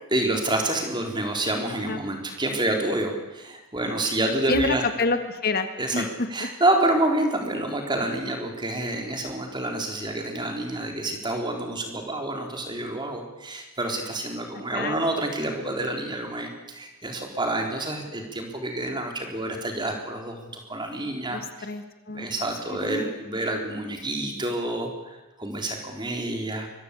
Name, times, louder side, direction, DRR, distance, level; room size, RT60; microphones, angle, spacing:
voice 1, 0.1-4.8 5.8-6.0 6.3-21.4 22.1-26.7, right 1 dB, 20° right, 3 dB, 3.9 m, -28 dB
voice 2, 4.5-5.7 5.9-6.3 14.7-15.0 21.3-22.3 22.8-23.3, left 3 dB, 45° left, 8 dB, 1.8 m, -27 dB
25.0 x 22.5 x 8.4 m, 1.1 s
head